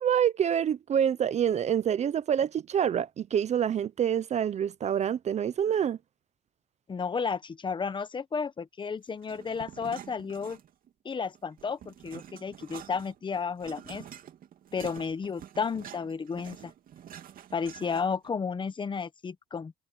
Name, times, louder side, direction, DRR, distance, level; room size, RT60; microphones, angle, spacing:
voice 1, 0.0-6.0, right 9 dB, 40° right, 0.6 m, -26 dB
voice 2, 6.9-10.6 11.0-14.0 14.7-16.7 17.5-19.7, left 5 dB, 30° left, 1.1 m, -32 dB
sound 1, 9.2-10.9 11.3-18.3, right 10 dB, 55° right, 2.4 m, -47 dB
cardioid pair, 110°, 17 cm